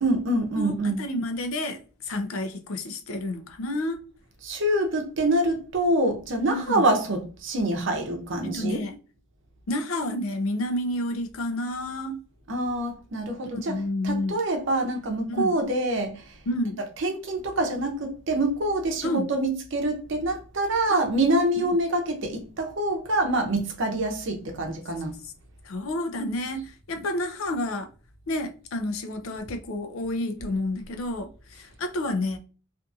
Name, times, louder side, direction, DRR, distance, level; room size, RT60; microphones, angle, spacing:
voice 1, 0.0-1.0 4.4-8.8 12.5-13.8 14.0-16.1 17.0-25.1, right 1 dB, 65° right, 0.7 m, -25 dB
voice 2, 0.6-4.0 6.5-6.9 8.4-9.0 9.7-12.2 13.6-14.4 15.3-15.6 16.5-16.8 19.0-19.3 20.9-21.0 25.2-25.3 25.6-27.9 28.3-32.4, left 1 dB, 80° left, 0.5 m, -30 dB
2.6 x 2.5 x 2.3 m
head